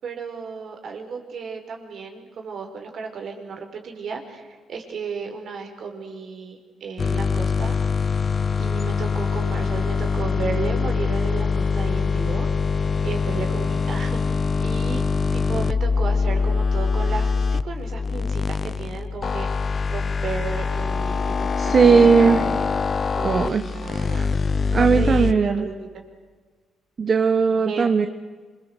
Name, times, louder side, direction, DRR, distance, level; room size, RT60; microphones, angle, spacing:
voice 1, 0.0-4.4 4.7-7.8 8.6-15.0 15.3-22.6 23.1-24.3 24.8-26.0 27.7-27.9, right 5 dB, 60° right, 4 dB, 5.0 m, -34 dB
sound 1, 7.0-25.3, left 5 dB, 40° left, 0.8 m, -23 dB
voice 2, 21.6-22.4 23.2-24.1 24.7-25.7 27.0-28.1, right 5 dB, 40° right, 10 dB, 1.1 m, -18 dB
27.0 x 23.0 x 8.1 m, 1.5 s
cardioid pair, 90°, 0 cm